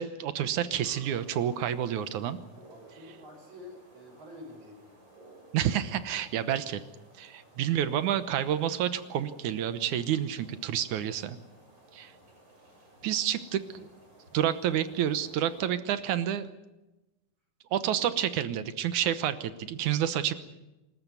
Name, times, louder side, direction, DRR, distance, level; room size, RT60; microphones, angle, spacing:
voice 1, 0.0-2.4 5.5-6.8 7.2-11.4 11.9-12.1 13.0-13.6 14.3-16.5 17.7-20.3, right 10 dB, 70° right, 12 dB, 2.3 m, -29 dB
sound 1, 0.8-15.6, right 1 dB, 25° right, 6.5 m, -57 dB
voice 2, 2.7-5.0 7.4-7.7 12.0-12.3, left 1 dB, 45° right, 3 dB, 6.5 m, -49 dB
25.5 x 13.5 x 9.5 m, 1.0 s
omnidirectional pair, 3.8 m